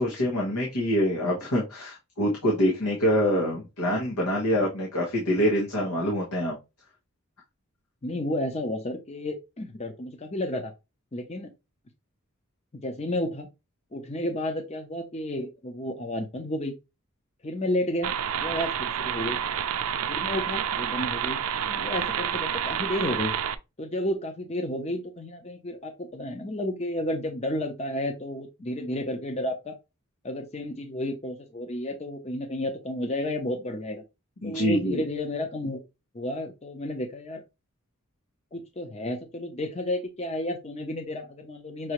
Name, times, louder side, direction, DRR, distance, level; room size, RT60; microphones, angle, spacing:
voice 1, 0.0-6.6 34.4-35.0, equal, 90° left, 1.3 m, -25 dB
voice 2, 8.0-10.7 11.1-11.5 12.7-13.5 13.9-16.7 17.4-19.4 20.1-23.3 23.8-29.8 30.2-34.0 34.4-35.8 36.1-37.4 38.5-41.9, left 1 dB, 30° left, 0.7 m, -32 dB
sound 1, 18.0-23.6, right 8 dB, 75° right, 0.4 m, -29 dB
6.0 x 2.7 x 3.0 m
head